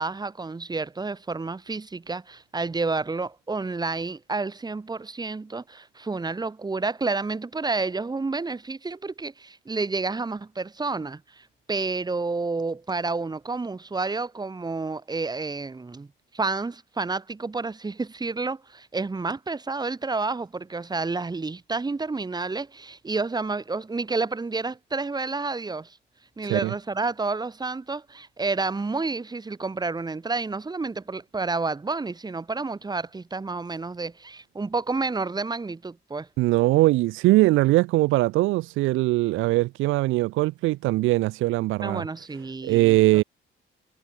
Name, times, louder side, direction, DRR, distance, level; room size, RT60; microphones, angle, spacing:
voice 1, 0.0-16.1 16.3-26.0 26.4-36.3 41.8-43.2, right 3 dB, 20° right, 1.3 m, -30 dB
voice 2, 26.4-26.7 36.4-42.0 42.6-43.2, right 19 dB, 85° right, 0.4 m, -21 dB
cardioid pair, 90°, 20 cm